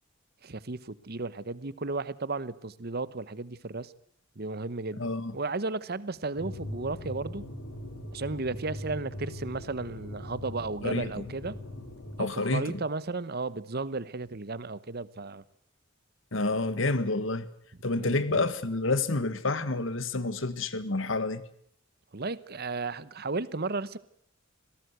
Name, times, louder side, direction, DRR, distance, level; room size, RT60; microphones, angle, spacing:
voice 1, 0.4-3.9 4.4-5.1 5.3-7.4 8.1-11.6 12.2-15.4 18.0-18.4 22.1-24.0, right 3 dB, 50° right, 1.0 m, -34 dB
voice 2, 5.0-5.3 10.8-11.2 12.2-12.8 16.3-17.5 17.8-21.4, left 2 dB, 65° left, 1.7 m, -29 dB
sound 1, 6.3-12.2, left 1 dB, 85° left, 3.6 m, -40 dB
26.0 x 18.0 x 8.1 m
head